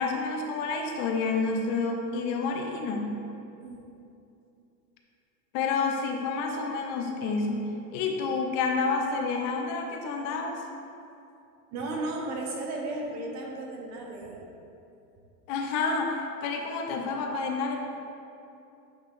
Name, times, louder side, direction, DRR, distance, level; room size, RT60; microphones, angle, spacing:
voice 1, 0.0-3.2 5.5-7.7 7.9-10.6 15.5-17.9, left 4 dB, 50° left, 2 dB, 0.7 m, -29 dB
voice 2, 3.6-3.9 11.7-14.4, right 2 dB, 35° right, 0 dB, 1.0 m, -35 dB
8.6 x 3.6 x 3.6 m, 2.7 s
supercardioid pair, 135°, 48 cm